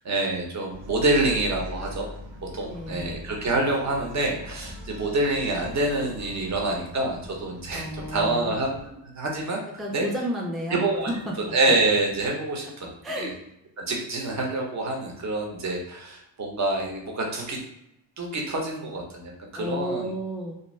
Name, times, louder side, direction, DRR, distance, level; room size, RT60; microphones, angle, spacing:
voice 1, 0.0-2.1 2.5-8.8 9.1-9.6 9.9-10.1 10.7-11.1 11.5-12.9 13.2-13.3 13.8-17.6 18.2-20.1, right 2 dB, 35° right, 0 dB, 0.9 m, -26 dB
Bark, 0.7-8.9, left 1 dB, 75° right, 0.9 m, -42 dB
voice 2, 2.6-3.1 7.7-8.5 9.8-10.8 11.1-11.3 12.6-13.3 19.6-20.6, equal, ahead, -1 dB, 0.5 m, -32 dB
2.6 x 2.1 x 3.2 m, 0.82 s
cardioid pair, 70°, 47 cm